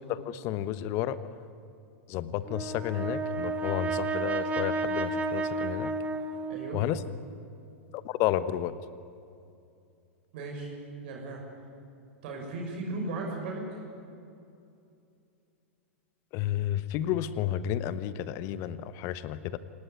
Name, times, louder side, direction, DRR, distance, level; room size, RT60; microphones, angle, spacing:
voice 1, 0.1-1.2 2.1-5.9 6.7-7.0 7.9-8.7 16.3-19.6, left 12 dB, 40° left, 14 dB, 1.2 m, -31 dB
Brass instrument, 2.5-6.9, right 3 dB, 20° right, 2.1 m, -32 dB
voice 2, 10.3-10.8 11.0-11.4 12.2-13.6, right 3 dB, 55° right, 0 dB, 6.2 m, -36 dB
27.0 x 18.5 x 9.5 m, 2.6 s
figure-of-eight pair, 95°, 7 cm